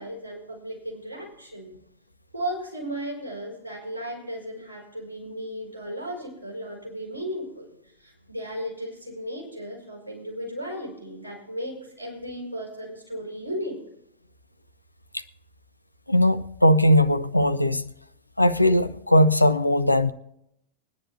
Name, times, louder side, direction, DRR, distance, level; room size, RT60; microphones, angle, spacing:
voice 1, 0.0-1.7 2.3-13.8, equal, 80° right, 5.2 m, -35 dB
voice 2, 16.1-17.9 18.4-20.1, left 1 dB, 85° left, 0.5 m, -19 dB
22.0 x 10.0 x 2.7 m
figure-of-eight pair, 90°, 0 cm